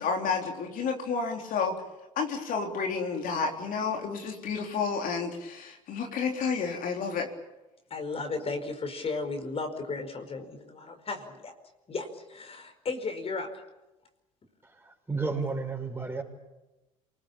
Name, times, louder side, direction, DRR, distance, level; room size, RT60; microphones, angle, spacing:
voice 1, 0.0-1.8 2.2-7.3, left 5 dB, 55° left, 2 dB, 3.9 m, -30 dB
voice 2, 7.9-11.5 11.9-13.5, left 3 dB, 35° left, 6 dB, 5.1 m, -35 dB
voice 3, 14.8-16.2, right 4 dB, 15° right, 3 dB, 6.6 m, -32 dB
27.5 x 20.5 x 8.7 m, 1.0 s
hypercardioid pair, 65°, 17 cm